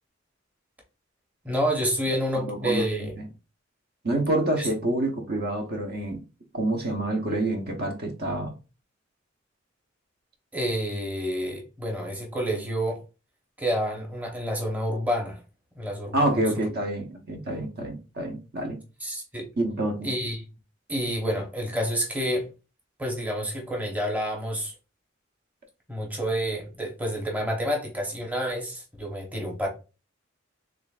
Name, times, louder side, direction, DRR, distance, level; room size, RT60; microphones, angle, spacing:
voice 1, 1.4-3.1 4.6-4.7 10.5-13.0 13.6-15.4 15.8-16.4 19.0-19.5 20.0-20.4 20.9-22.4 23.0-24.7 25.9-29.7, equal, 10° right, 0.9 m, -29 dB
voice 2, 2.4-3.2 4.0-6.2 6.5-8.5 16.1-18.8 19.6-20.1, right 1 dB, 50° right, 0.8 m, -27 dB
3.7 x 3.4 x 2.3 m
head